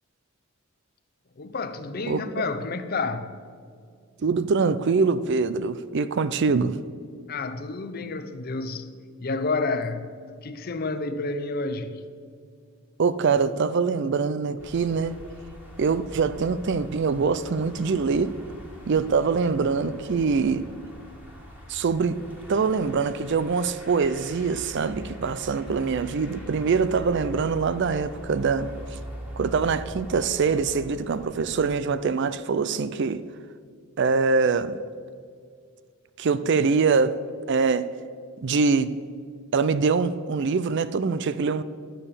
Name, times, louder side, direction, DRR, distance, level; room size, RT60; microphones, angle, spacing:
voice 1, 1.4-3.3 7.3-8.9 9.2-12.1, left 3 dB, 45° left, 0.6 m, -30 dB
voice 2, 4.2-6.8 13.0-15.2 15.8-18.4 18.9-20.7 21.7-22.2 22.5-28.7 29.4-33.2 34.0-34.8 36.2-37.2 37.5-37.9 38.4-38.9 39.5-41.6, right 5 dB, 55° right, 0.4 m, -24 dB
sound 1, 14.6-31.6, equal, 10° right, 1.8 m, -42 dB
12.0 x 7.7 x 6.8 m
head